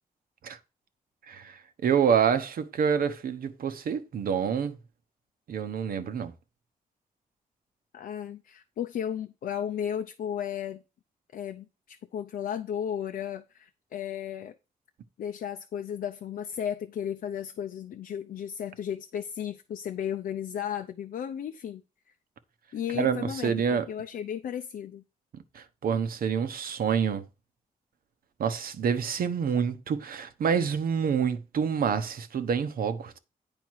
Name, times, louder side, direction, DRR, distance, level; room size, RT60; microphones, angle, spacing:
voice 1, 1.3-4.8 5.5-6.3 22.9-23.9 25.5-27.2 28.4-33.2, right 7 dB, 80° right, 1.0 m, -27 dB
voice 2, 7.9-10.8 11.3-14.6 15.2-21.8 22.7-25.0, left 9 dB, 85° left, 0.6 m, -34 dB
9.1 x 5.1 x 4.6 m
wide cardioid pair, 120°, 15 cm